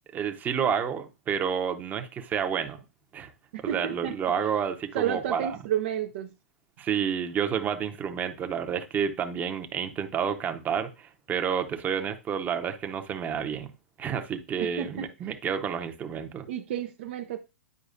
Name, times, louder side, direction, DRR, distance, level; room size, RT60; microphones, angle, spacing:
voice 1, 0.1-2.8 3.1-3.3 3.6-5.6 6.8-13.7 14.0-16.5, right 7 dB, 25° right, 0.8 m, -30 dB
voice 2, 3.5-4.5 4.9-6.3 14.6-15.1 16.5-17.4, right 10 dB, 55° right, 0.5 m, -31 dB
9.6 x 4.7 x 2.5 m
hypercardioid pair, 110°, 7 cm